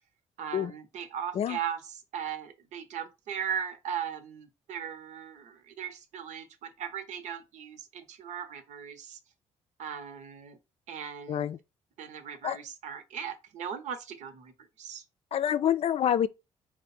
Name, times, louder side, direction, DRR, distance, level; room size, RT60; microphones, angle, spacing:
voice 1, 0.4-1.8 2.1-9.2 9.8-10.6 10.9-11.5 12.0-14.5 14.8-15.0, right 8 dB, 75° right, 0.9 m, -38 dB
voice 2, 15.3-16.3, left 9 dB, 55° left, 0.4 m, -27 dB
4.5 x 2.2 x 4.2 m
cardioid pair, 80°, 12 cm